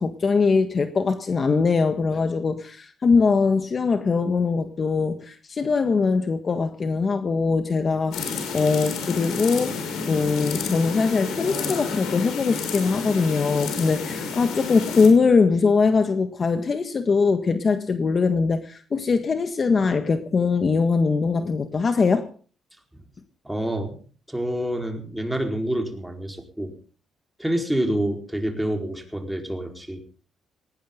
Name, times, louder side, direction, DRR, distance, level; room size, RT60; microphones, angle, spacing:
voice 1, 0.0-22.3, left 4 dB, 40° left, 1.6 m, -22 dB
sound 1, 8.1-15.1, left 5 dB, 85° left, 5.8 m, -30 dB
voice 2, 23.4-24.0 24.3-26.7 27.4-30.0, right 1 dB, 5° right, 4.6 m, -27 dB
19.0 x 18.0 x 3.8 m
cardioid pair, 90°, 0 cm